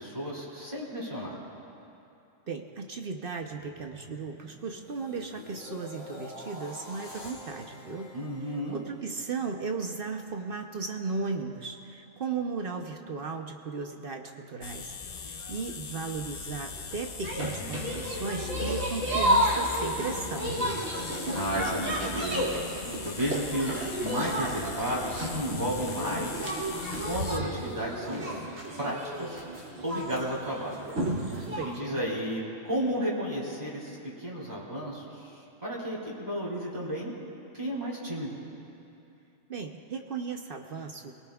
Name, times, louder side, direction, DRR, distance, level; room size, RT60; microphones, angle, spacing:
voice 1, 0.0-1.4 8.1-8.8 21.3-22.5 23.0-26.5 27.0-28.2 28.8-29.4 29.8-30.8 31.2-35.3 35.6-37.1 37.5-38.4, equal, 35° right, -5 dB, 3.0 m, -33 dB
voice 2, 2.5-8.2 8.7-14.9 15.3-20.8 31.6-32.0 39.5-41.1, right 4 dB, 50° right, 4 dB, 0.9 m, -36 dB
sound 1, 3.3-9.5 9.9-10.2, left 1 dB, 75° left, 2.1 m, -47 dB
sound 2, 14.6-27.4, left 5 dB, 45° left, 0.6 m, -40 dB
sound 3, 17.2-31.8, equal, 80° right, 2.6 m, -32 dB
24.5 x 18.5 x 2.3 m, 2.7 s
omnidirectional pair, 1.3 m